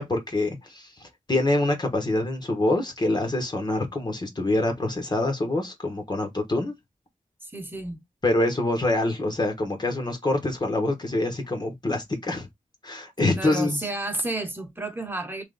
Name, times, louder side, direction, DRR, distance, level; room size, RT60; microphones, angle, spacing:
voice 1, 0.0-6.7 8.2-12.5 12.8-13.8, left 2 dB, 30° left, 0.9 m, -25 dB
voice 2, 7.4-8.0 13.3-15.4, right 2 dB, 15° right, 1.0 m, -31 dB
3.3 x 3.0 x 3.8 m
wide cardioid pair, 130°, 14 cm